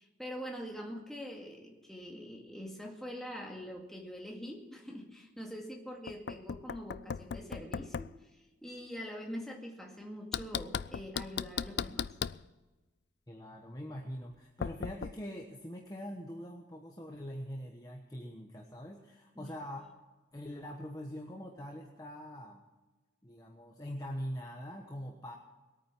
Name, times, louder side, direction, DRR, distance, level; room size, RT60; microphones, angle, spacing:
voice 1, 0.0-8.1 8.6-12.1 19.4-19.5, equal, ahead, -1 dB, 2.2 m, -44 dB
Knock, 6.1-8.2 10.3-12.4 14.6-15.1, left 7 dB, 60° left, 0.4 m, -37 dB
voice 2, 13.3-19.9 20.3-22.6 23.2-25.3, equal, 20° left, 1 dB, 1.1 m, -43 dB
21.0 x 9.1 x 6.1 m, 1.2 s
head